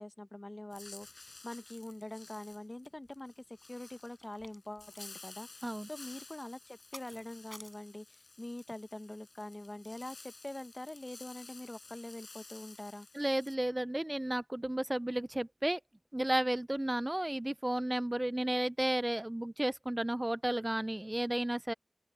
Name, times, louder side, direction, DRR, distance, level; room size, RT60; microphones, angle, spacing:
voice 1, 0.0-13.1, left 1 dB, 35° left, 1.0 m, -45 dB
sound 1, 0.7-13.6, left 3 dB, 85° left, 6.6 m, -54 dB
sound 2, 2.8-3.1 3.5-7.8, equal, 10° right, 6.9 m, -55 dB
voice 2, 13.1-15.8 16.1-21.7, right 1 dB, 25° right, 0.3 m, -33 dB
open air
wide cardioid pair, 55°, 0 cm